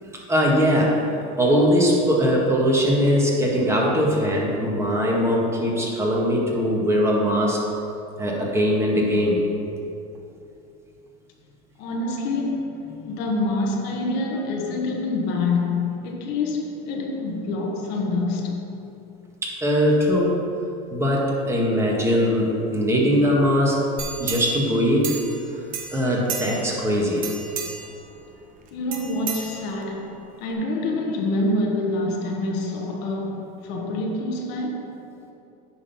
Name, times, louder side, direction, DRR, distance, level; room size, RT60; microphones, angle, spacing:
voice 1, 0.3-1.0 1.4-7.6 8.2-9.4 12.9-13.0 19.4-20.4 20.9-23.8 24.2-25.1 25.9-27.3, equal, 15° right, 1.7 m, -21 dB
voice 2, 11.8-18.7 28.7-34.9, left 2 dB, 65° left, 1.3 m, -26 dB
sound 1, 24.0-25.5 25.7-26.8 27.2-28.0 28.9-30.0 30.5-30.6, right 6 dB, 45° right, 1.1 m, -33 dB
9.5 x 3.9 x 5.8 m
supercardioid pair, 115°, 19 cm